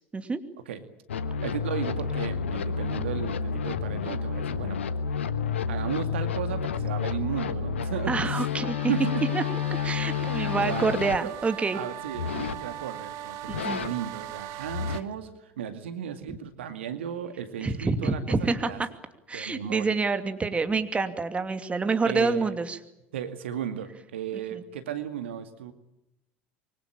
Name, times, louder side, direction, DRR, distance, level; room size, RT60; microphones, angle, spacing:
sound 1, 1.1-11.2 12.1-12.6 13.5-13.9 14.6-15.0, left 6 dB, 75° left, 1.3 m, -30 dB
voice 1, 1.4-4.8 5.7-8.5 8.9-9.4 10.3-11.3 11.7-18.8 19.3-20.0 22.0-22.5 23.1-25.7, right 9 dB, 70° right, 9 dB, 2.2 m, -35 dB
voice 2, 8.1-8.9 9.3-9.4 9.8-11.8 13.5-13.8 17.6-18.9 19.3-22.8, right 4 dB, 20° right, 8 dB, 2.6 m, -27 dB
sound 2, 8.6-15.0, right 12 dB, 55° right, 1.6 m, -40 dB
25.5 x 24.0 x 8.7 m, 0.85 s
figure-of-eight pair, 70°, 6 cm